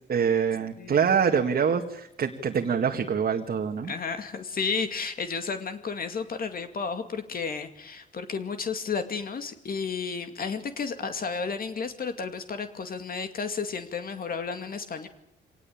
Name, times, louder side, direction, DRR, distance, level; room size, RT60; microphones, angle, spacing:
voice 1, 0.1-3.9, right 7 dB, 50° right, 3 dB, 2.0 m, -25 dB
voice 2, 0.8-1.2 3.8-15.1, left 5 dB, 45° left, 7 dB, 2.4 m, -32 dB
24.5 x 18.5 x 8.8 m, 0.79 s
cardioid pair, 90°, 20 cm